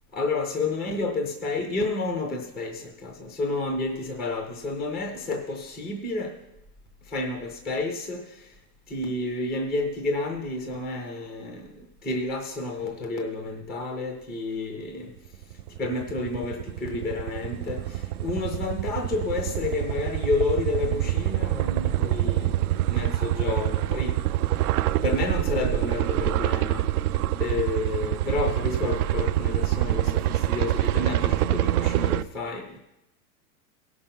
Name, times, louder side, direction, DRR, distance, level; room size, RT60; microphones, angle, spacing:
voice 1, 0.1-6.4 7.1-8.4 8.9-15.1 15.8-22.5 22.9-24.2 25.0-26.9 27.4-32.8, left 3 dB, ahead, 2 dB, 0.3 m, -30 dB
sound 1, 15.4-32.2, right 14 dB, 65° right, 0.6 m, -26 dB
17.0 x 5.9 x 5.5 m, 0.89 s
hypercardioid pair, 145°, 49 cm